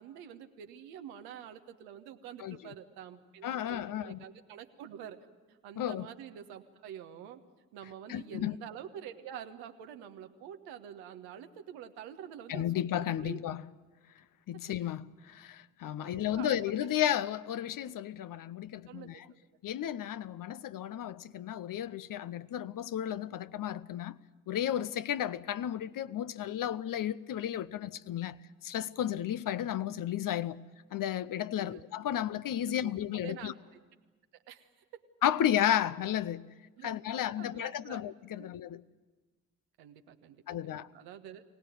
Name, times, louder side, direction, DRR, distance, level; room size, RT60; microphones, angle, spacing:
voice 1, 0.0-5.2 5.5-7.4 7.7-12.6 13.2-13.4 16.0-16.9 18.9-19.2 31.5-31.8 32.6-32.9 33.2-33.5 34.5-34.7 36.8-38.0 38.4-38.5 39.8-41.4, right 9 dB, 85° right, 1.3 m, -47 dB
voice 2, 3.4-4.2 5.8-6.1 8.1-8.6 12.5-13.6 14.5-19.3 19.6-24.2 24.5-30.6 30.9-33.5 35.2-36.4 36.8-38.8 40.5-40.9, left 11 dB, 60° left, 0.8 m, -33 dB
24.0 x 18.0 x 9.4 m
hypercardioid pair, 40°, 37 cm